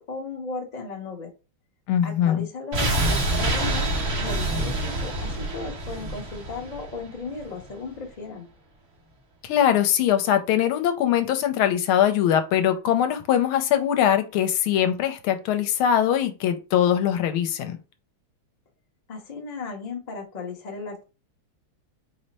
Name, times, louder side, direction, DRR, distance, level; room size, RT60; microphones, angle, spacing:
voice 1, 0.0-1.3 2.0-8.5 19.1-21.0, left 4 dB, 40° left, 0.5 m, -36 dB
voice 2, 1.9-2.5 9.4-17.8, left 10 dB, 80° left, 1.4 m, -22 dB
sound 1, 2.7-7.7 8.0-8.1, right 1 dB, 50° right, 1.7 m, -26 dB
4.8 x 2.1 x 4.0 m
omnidirectional pair, 2.4 m